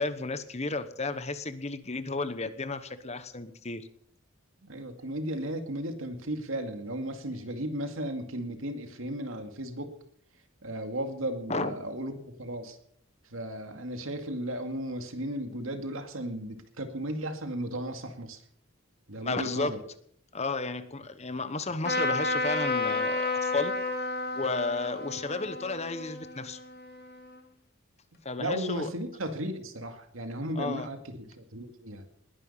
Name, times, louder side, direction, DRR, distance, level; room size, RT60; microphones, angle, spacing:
voice 1, 0.0-3.9 11.5-11.7 19.2-19.7 20.3-23.7 24.3-26.6 28.2-28.9 30.6-30.9, left 3 dB, 30° left, 12 dB, 1.0 m, -33 dB
voice 2, 4.6-9.9 10.6-12.8 13.3-18.4 19.1-19.8 28.4-32.1, right 1 dB, 75° right, 6 dB, 2.3 m, -35 dB
Trumpet, 21.8-27.4, left 2 dB, 50° left, 2.5 m, -31 dB
20.0 x 11.0 x 5.7 m, 0.66 s
head